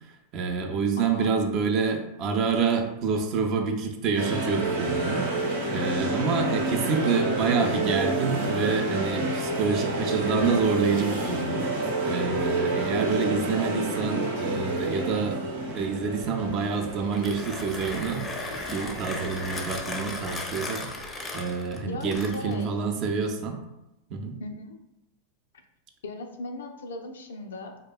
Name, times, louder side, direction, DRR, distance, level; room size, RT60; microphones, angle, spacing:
voice 1, 0.3-11.7 12.1-15.4 15.7-18.2 18.7-23.6 24.1-24.4, right 5 dB, 45° right, 4 dB, 0.4 m, -27 dB
voice 2, 1.0-1.4 21.8-22.7 24.4-24.8 26.0-27.8, left 2 dB, 80° left, 4 dB, 0.3 m, -38 dB
sound 1, 4.1-19.6, right 1 dB, 75° right, 0.7 m, -29 dB
Mechanisms, 17.1-22.7, left 2 dB, 20° left, 0.4 m, -36 dB
2.8 x 2.2 x 2.3 m, 0.91 s
hypercardioid pair, 105°, 0 cm